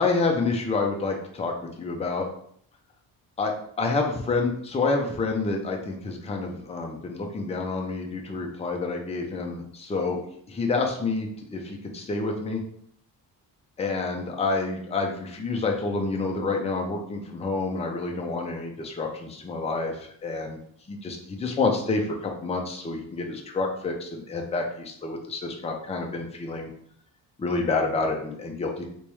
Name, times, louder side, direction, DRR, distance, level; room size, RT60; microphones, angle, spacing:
voice 1, 0.0-2.3 3.4-10.2 10.5-12.6 13.8-20.0 20.2-20.6 20.9-26.7 27.4-28.9, left 3 dB, 15° left, 1 dB, 0.4 m, -28 dB
3.4 x 3.0 x 3.1 m, 0.64 s
wide cardioid pair, 150°, 45 cm